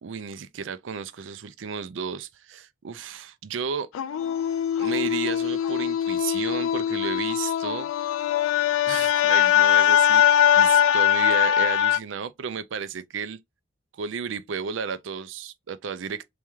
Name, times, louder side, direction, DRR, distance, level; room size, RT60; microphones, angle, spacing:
voice 1, 0.0-3.9 4.8-7.9 8.8-13.4 13.9-16.2, right 6 dB, 65° right, 0.4 m, -33 dB
sound 1, 4.0-12.0, left 10 dB, 80° left, 0.3 m, -21 dB
3.5 x 3.4 x 3.0 m
head